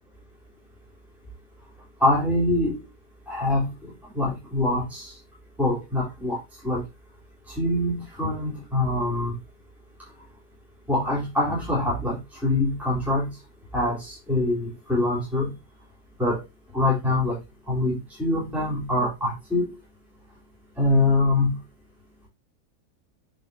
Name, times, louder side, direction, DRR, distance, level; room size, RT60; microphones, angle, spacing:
voice 1, 2.0-2.8 3.3-3.7 4.2-5.1 5.6-6.4 6.6-6.8 7.6-9.3 10.9-13.3 13.7-15.5 16.2-16.4 16.7-17.4 17.7-19.7 20.8-21.6, left 2 dB, ahead, -7 dB, 3.8 m, -24 dB
9.2 x 5.1 x 2.9 m, 0.22 s
omnidirectional pair, 1.6 m